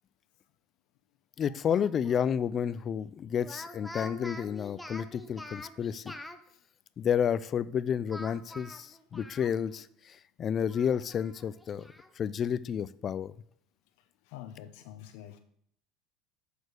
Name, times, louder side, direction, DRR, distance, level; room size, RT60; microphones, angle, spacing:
voice 1, 1.4-6.1 7.0-11.9 12.2-13.3, left 8 dB, 30° left, 0.4 m, -31 dB
Speech, 1.7-2.3 3.4-6.4 8.1-9.8 10.1-10.2 10.7-12.1, left 1 dB, 5° left, 0.7 m, -46 dB
voice 2, 14.3-15.4, left 11 dB, 75° left, 0.7 m, -47 dB
7.0 x 6.3 x 6.4 m
cardioid pair, 145°, 0 cm